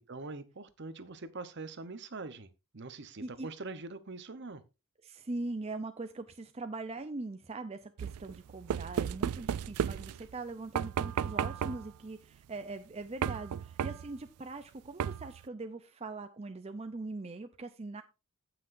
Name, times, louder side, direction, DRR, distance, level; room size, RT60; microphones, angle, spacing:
voice 1, 0.1-4.6, right 3 dB, 50° right, 0.9 m, -43 dB
voice 2, 5.0-18.0, right 3 dB, 30° right, 0.5 m, -41 dB
sound 1, 8.0-10.4 10.8-12.0 13.2-14.2 15.0-15.4, right 8 dB, 85° right, 0.3 m, -34 dB
16.0 x 5.9 x 2.6 m
head